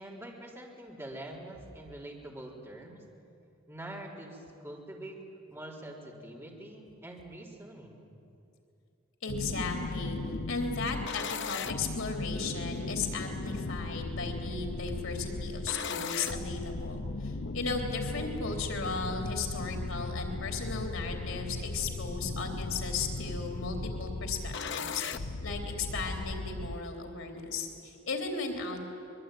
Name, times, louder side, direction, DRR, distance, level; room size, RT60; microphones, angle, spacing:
voice 1, 0.0-3.0 3.7-5.2 5.5-8.2, right 1 dB, 15° right, -3 dB, 3.8 m, -45 dB
voice 2, 9.2-10.2 10.5-28.9, left 4 dB, 85° left, 3 dB, 3.4 m, -36 dB
sound 1, 9.3-26.8, left 3 dB, 60° left, 0.8 m, -37 dB
24.0 x 22.0 x 9.2 m, 2.7 s
head